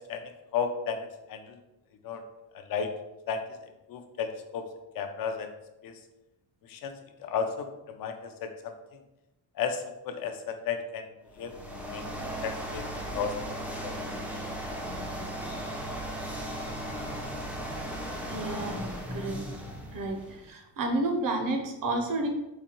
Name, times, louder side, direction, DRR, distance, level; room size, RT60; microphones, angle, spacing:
voice 1, 0.5-1.6 2.0-2.2 2.7-2.9 3.3-3.4 3.9-4.7 4.9-5.5 5.8-5.9 6.7-6.9 7.2-8.7 9.6-11.1 11.4-11.5 11.9-12.0 12.4-12.9 13.1-13.3 13.8-14.0, left 6 dB, 60° left, 6 dB, 0.5 m, -33 dB
sound 1, 11.3-20.5, equal, 5° right, 0.3 m, -36 dB
voice 2, 18.3-19.4 19.9-20.2 20.4-22.3, right 2 dB, 55° right, 3 dB, 0.6 m, -30 dB
4.1 x 2.6 x 2.8 m, 0.96 s
cardioid pair, 155°, 40 cm